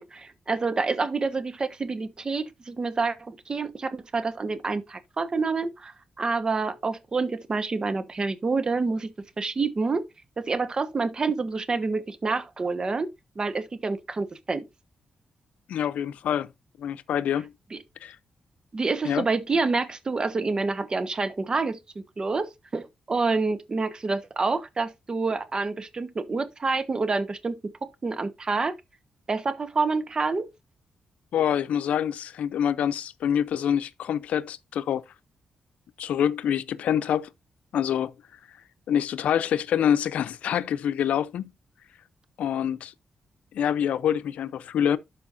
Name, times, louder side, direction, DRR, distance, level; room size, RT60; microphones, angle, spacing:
voice 1, 0.0-9.1 9.4-10.0 10.4-13.1 13.3-14.6 17.7-17.8 18.7-28.7 29.3-30.5, right 4 dB, 35° right, 1.2 m, -28 dB
voice 2, 15.7-16.5 16.8-17.5 18.0-18.2 19.0-19.3 31.3-35.0 36.0-37.3 37.7-38.1 38.9-41.5 42.4-42.9 43.5-45.0, left 9 dB, 90° left, 0.5 m, -26 dB
12.0 x 5.1 x 2.6 m
cardioid pair, 85°, 2 cm